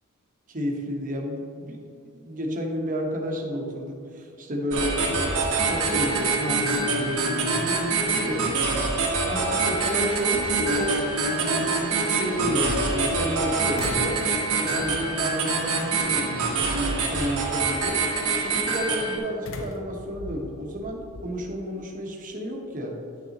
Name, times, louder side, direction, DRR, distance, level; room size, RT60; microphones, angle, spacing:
voice 1, 0.5-1.8 2.1-7.8 8.2-8.5 9.3-11.0 11.4-14.2 14.5-23.0, equal, 40° right, 0 dB, 1.2 m, -31 dB
sound 1, 4.6-4.9 5.2-6.2 6.6-6.7 9.4-9.5 10.0-11.0 12.3-13.4 13.7-14.3 14.8-15.2 16.0-16.4 19.4-21.3, left 1 dB, 60° left, 0.8 m, -39 dB
sound 2, 4.7-19.2, right 3 dB, 80° right, 1.5 m, -25 dB
10.5 x 6.5 x 3.0 m, 2.6 s
head